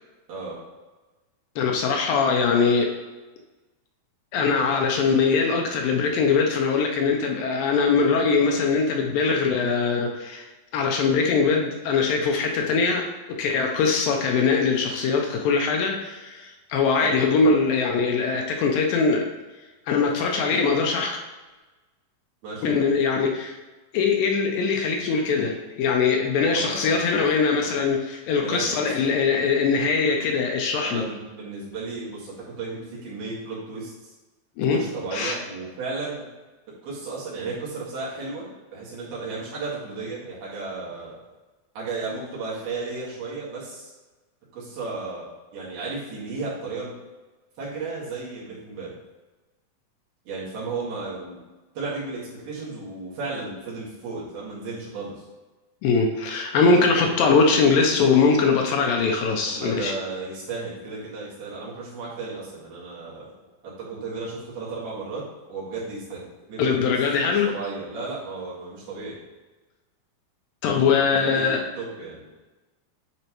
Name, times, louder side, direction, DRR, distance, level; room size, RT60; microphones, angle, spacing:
voice 1, 1.6-2.9 4.3-10.4 10.7-19.3 19.9-21.2 22.6-23.6 23.9-31.0 34.6-34.8 35.1-35.4 55.8-59.9 66.6-67.5 70.6-71.6, left 5 dB, 75° left, 2 dB, 2.3 m, -22 dB
voice 2, 22.4-22.8 26.5-27.0 27.6-27.7 28.4-28.8 30.7-34.1 34.7-36.3 36.8-41.2 41.8-43.9 44.5-45.3 45.5-46.9 47.6-48.9 50.3-51.4 51.8-55.2 59.5-63.3 63.6-65.2 65.5-66.9 67.2-69.2 70.9-72.3, right 3 dB, 80° right, -7 dB, 3.9 m, -34 dB
9.8 x 4.0 x 3.0 m, 1.2 s
omnidirectional pair, 4.4 m